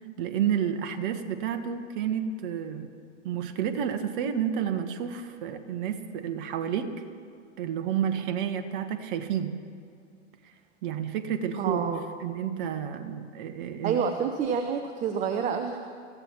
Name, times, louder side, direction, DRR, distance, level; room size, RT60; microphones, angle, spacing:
voice 1, 0.2-2.9 3.2-6.9 7.6-9.6 10.8-11.8 12.2-14.0, right 8 dB, 45° right, 8 dB, 1.4 m, -30 dB
voice 2, 11.6-12.0 13.8-15.8, right 6 dB, 20° right, 6 dB, 0.8 m, -28 dB
25.5 x 15.0 x 3.0 m, 2.4 s
hypercardioid pair, 110°, 37 cm